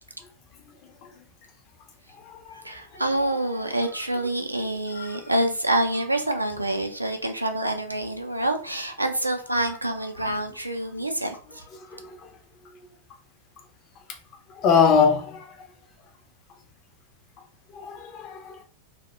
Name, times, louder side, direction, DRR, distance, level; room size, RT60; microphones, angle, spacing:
voice 1, 2.5-11.6, right 1 dB, 85° right, 0.3 m, -27 dB
voice 2, 14.6-15.4 17.7-18.6, left 6 dB, 35° left, 0.5 m, -21 dB
2.1 x 2.1 x 2.9 m
figure-of-eight pair, 90°, 0 cm